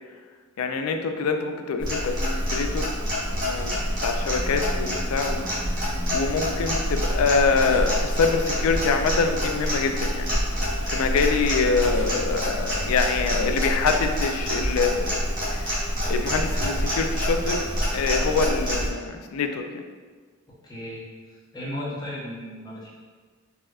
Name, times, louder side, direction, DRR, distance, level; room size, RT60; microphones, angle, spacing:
voice 1, 0.6-2.9 3.3-5.4 5.8-15.2 15.5-17.6 17.9-19.8, left 4 dB, 80° left, 6 dB, 0.3 m, -25 dB
Clock, 1.8-18.9, equal, 40° right, 1.0 m, -26 dB
voice 2, 20.6-21.0 21.5-22.9, left 1 dB, 20° left, -6 dB, 0.6 m, -34 dB
4.2 x 2.4 x 2.3 m, 1.5 s
head